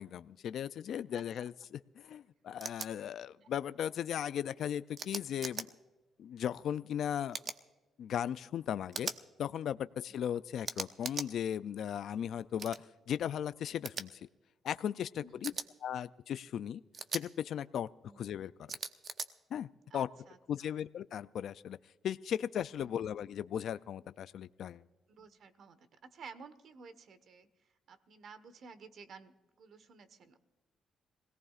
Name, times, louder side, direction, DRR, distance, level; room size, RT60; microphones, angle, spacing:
voice 1, 0.0-5.7 6.2-7.4 8.0-9.1 9.4-12.8 13.1-14.2 14.6-15.5 15.8-16.8 17.1-17.9 18.2-18.8 19.5-19.7 19.9-20.1 20.5-21.8 22.0-24.8, left 9 dB, 70° left, 14 dB, 0.4 m, -37 dB
voice 2, 0.9-1.2 10.1-10.2 15.2-15.4 18.1-18.2 19.9-20.8 22.8-22.9 25.1-27.5 27.9-30.4, right 5 dB, 60° right, 12 dB, 1.3 m, -54 dB
sound 1, 2.6-2.9 5.0-5.7 7.3-7.6 8.9-9.2 10.6-11.3 12.6-12.8 13.8-14.0 15.4-15.7 16.9-17.2 18.7-19.3, right 5 dB, 45° right, 1.0 m, -39 dB
26.0 x 18.0 x 2.5 m, 1.1 s
cardioid pair, 90°, 0 cm